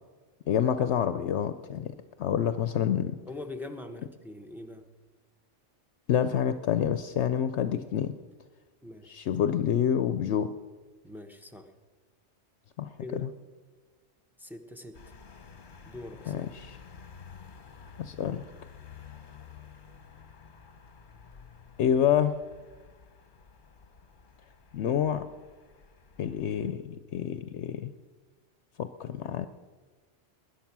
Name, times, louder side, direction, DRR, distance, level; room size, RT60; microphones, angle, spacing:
voice 1, 0.5-1.9 2.2-3.1 6.1-8.1 9.1-10.5 12.8-13.3 16.3-16.8 18.0-18.4 21.8-22.4 24.7-25.2 26.2-27.9 28.8-29.5, left 9 dB, 70° left, 11 dB, 0.9 m, -27 dB
voice 2, 3.3-4.9 8.8-9.2 11.0-11.7 13.0-13.3 14.4-15.1 15.9-16.5, left 2 dB, ahead, 4 dB, 1.0 m, -43 dB
sound 1, 14.9-26.7, left 6 dB, 45° left, 1.2 m, -51 dB
20.0 x 10.5 x 6.0 m, 1.4 s
omnidirectional pair, 1.2 m